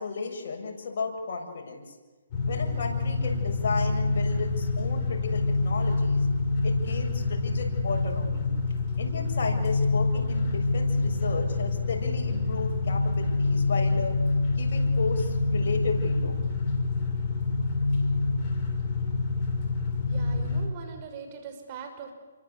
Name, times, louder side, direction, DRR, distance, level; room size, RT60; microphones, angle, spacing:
voice 1, 0.0-1.8 2.4-6.3 6.6-8.5 9.0-14.1 14.6-16.4, left 4 dB, 60° left, 1 dB, 7.1 m, -34 dB
sound 1, 2.3-20.7, left 3 dB, 30° left, 6.8 m, -26 dB
voice 2, 20.1-22.1, right 6 dB, 35° right, 5 dB, 6.1 m, -41 dB
29.0 x 24.5 x 8.5 m, 1.2 s
hypercardioid pair, 145°, 0 cm